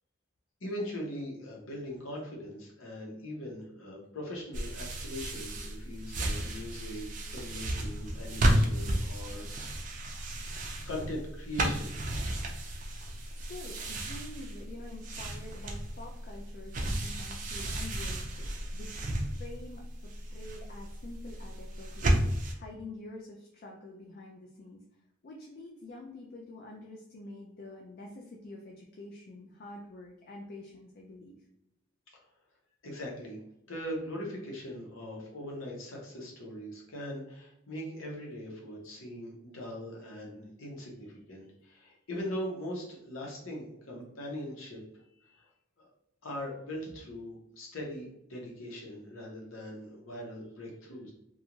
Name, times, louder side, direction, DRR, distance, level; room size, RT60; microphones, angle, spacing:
voice 1, 0.6-9.9 10.8-11.9 32.1-32.2 32.8-33.4 33.7-44.8 45.2-45.5 45.8-45.9 46.2-51.1, equal, 85° left, -2 dB, 0.9 m, -41 dB
sound 1, 4.5-22.5, right 1 dB, 40° right, 0.4 m, -33 dB
voice 2, 13.5-24.8 25.2-31.4, left 2 dB, 45° left, 0 dB, 0.3 m, -47 dB
2.5 x 2.3 x 2.9 m, 0.79 s
head